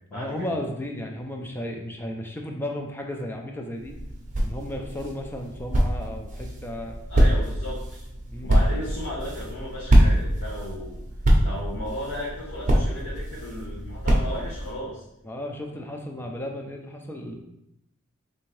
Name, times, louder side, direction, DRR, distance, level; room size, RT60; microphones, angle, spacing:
voice 1, 0.1-4.0 4.4-7.0 8.3-8.5 15.2-17.4, left 1 dB, 10° left, 2 dB, 0.4 m, -34 dB
sound 1, 3.8-14.7, right 1 dB, 35° right, 0.6 m, -24 dB
voice 2, 7.1-8.0 8.4-11.0 11.4-15.0, left 1 dB, 90° left, -9 dB, 1.0 m, -35 dB
3.4 x 2.7 x 3.2 m, 0.82 s
head